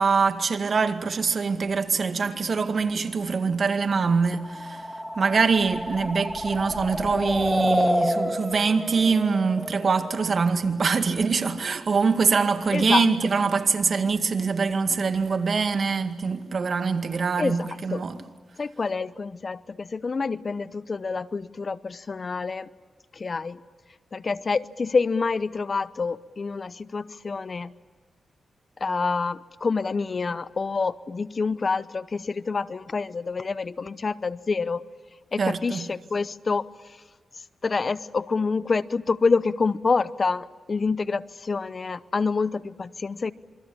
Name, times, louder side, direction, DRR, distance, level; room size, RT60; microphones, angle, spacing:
voice 1, 0.0-4.9 5.2-18.2 35.4-35.9, right 5 dB, 55° right, 2.0 m, -24 dB
sound 1, 4.4-10.2, equal, 5° left, 2.6 m, -28 dB
voice 2, 12.7-13.0 17.4-17.6 17.9-18.0 18.6-22.7 23.1-23.6 24.1-27.7 28.8-34.8 35.3-36.6 37.6-43.3, left 4 dB, 45° left, 0.8 m, -27 dB
27.5 x 24.5 x 8.7 m
cardioid pair, 70°, 0 cm